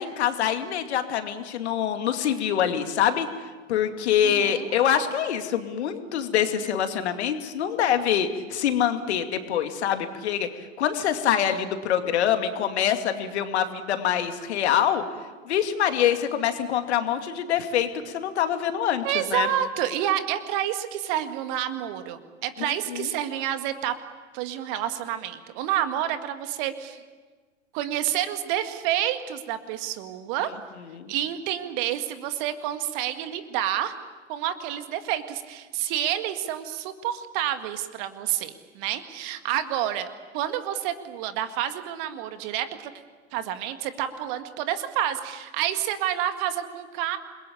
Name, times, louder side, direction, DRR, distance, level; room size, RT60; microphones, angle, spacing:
voice 1, 0.0-3.3 3.7-15.0 15.4-19.0 19.3-19.5 22.9-23.1 30.9-31.1, left 9 dB, 60° left, 7 dB, 2.5 m, -25 dB
voice 2, 4.2-4.7 19.0-24.0 24.3-27.0 27.7-30.5 31.1-33.9 34.3-40.1 40.3-42.9 43.3-47.2, right 11 dB, 45° right, 9 dB, 2.1 m, -29 dB
28.5 x 21.5 x 8.6 m, 1.3 s
figure-of-eight pair, 95°, 38 cm